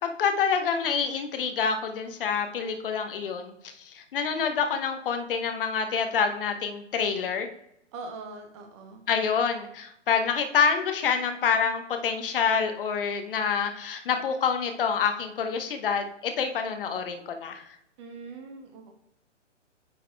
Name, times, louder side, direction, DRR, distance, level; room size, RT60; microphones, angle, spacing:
voice 1, 0.0-3.5 3.9-7.5 9.1-17.6, left 6 dB, 45° left, 6 dB, 1.1 m, -27 dB
voice 2, 7.9-9.0 18.0-18.9, right 3 dB, 25° right, 4 dB, 0.8 m, -42 dB
9.3 x 4.0 x 3.4 m, 0.81 s
figure-of-eight pair, 125°, 37 cm